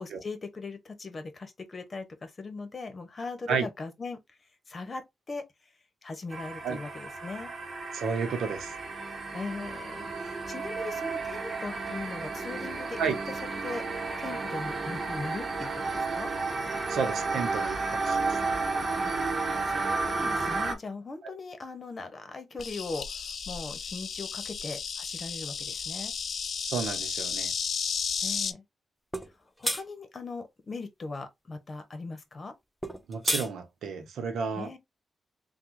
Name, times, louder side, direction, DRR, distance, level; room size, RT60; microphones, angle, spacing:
voice 1, 0.0-4.2 4.7-5.4 6.0-7.5 9.3-13.0 13.3-13.4 13.6-13.8 14.2-16.3 19.0-19.1 19.6-26.1 28.2-28.6 29.6-32.5 34.6-34.8, left 3 dB, 40° left, 1.0 m, -39 dB
sound 1, 6.3-20.7, right 3 dB, 45° right, 1.0 m, -32 dB
voice 2, 7.9-8.7 13.0-13.2 16.9-18.2 26.6-27.5 33.1-34.7, right 5 dB, 85° right, 0.8 m, -31 dB
Insect, 22.6-28.5, left 6 dB, 65° left, 0.4 m, -33 dB
sound 2, 29.1-29.3 29.6-29.8 32.8-33.5, equal, 5° left, 0.7 m, -29 dB
3.4 x 2.3 x 3.0 m
cardioid pair, 65°, 0 cm